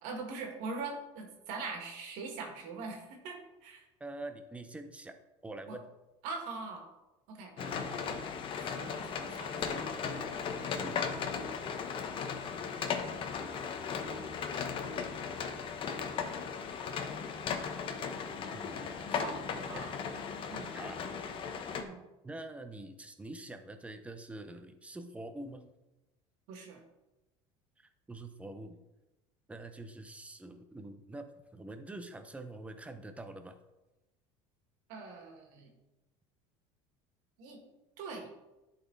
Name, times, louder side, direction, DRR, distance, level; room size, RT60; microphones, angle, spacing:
voice 1, 0.0-3.9 5.7-5.8 6.2-6.9 7.3-8.0 8.5-10.0 10.8-11.1 14.0-14.6 19.1-19.9 20.5-20.7 21.8-22.0 26.5-26.8 34.9-35.7 37.4-37.6 38.0-38.3, right 4 dB, 70° right, 2 dB, 2.0 m, -43 dB
voice 2, 4.0-5.2 5.4-5.8 10.8-11.0 18.5-19.0 19.7-19.8 20.7-21.0 22.2-25.7 27.8-28.8 29.5-33.6, right 2 dB, 10° right, 8 dB, 0.7 m, -45 dB
sound 1, 7.6-21.8, left 6 dB, 40° left, 0.9 m, -37 dB
11.0 x 4.2 x 4.0 m, 1.0 s
supercardioid pair, 130°, 14 cm